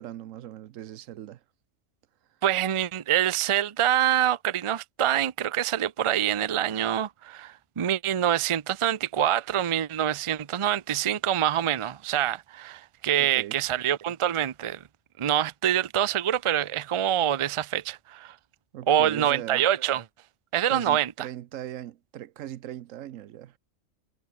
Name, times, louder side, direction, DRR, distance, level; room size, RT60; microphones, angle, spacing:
voice 1, 0.0-1.4 13.2-13.6 18.7-19.7 20.7-23.6, right 12 dB, 80° right, 1.1 m, -39 dB
voice 2, 2.4-14.8 15.2-18.4 18.9-20.0 20.5-21.3, right 11 dB, 40° right, 0.4 m, -25 dB
omnidirectional pair, 1.3 m